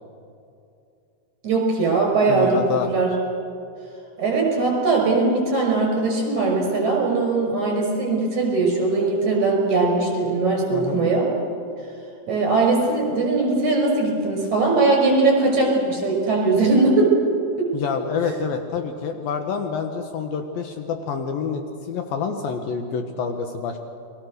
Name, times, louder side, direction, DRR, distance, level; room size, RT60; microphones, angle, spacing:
voice 1, 1.4-2.6 2.9-3.1 4.2-11.3 12.3-17.1 17.6-17.7, right 3 dB, 45° right, 0 dB, 7.2 m, -20 dB
voice 2, 2.3-2.9 10.7-11.0 17.7-23.8, left 6 dB, 70° left, 5 dB, 2.7 m, -27 dB
29.5 x 22.5 x 6.6 m, 2.6 s
omnidirectional pair, 4.9 m